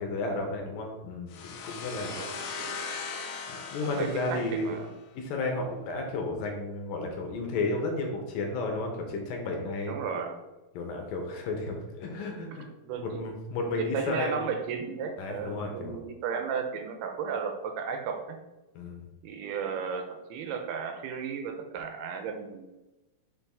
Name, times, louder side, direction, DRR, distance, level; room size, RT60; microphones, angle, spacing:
voice 1, 0.0-2.2 3.5-4.7 5.2-10.0 10.7-12.7 13.0-14.5 15.2-16.0 18.8-19.1, left 2 dB, 75° left, 2 dB, 2.5 m, -33 dB
sound 1, 1.3-5.0, left 5 dB, 90° left, 1.6 m, -39 dB
voice 2, 2.0-2.7 3.8-4.9 9.9-10.4 12.5-13.3 13.8-18.4 19.2-22.7, right 6 dB, 85° right, 4 dB, 2.8 m, -34 dB
6.1 x 5.8 x 3.6 m, 1.1 s
omnidirectional pair, 4.5 m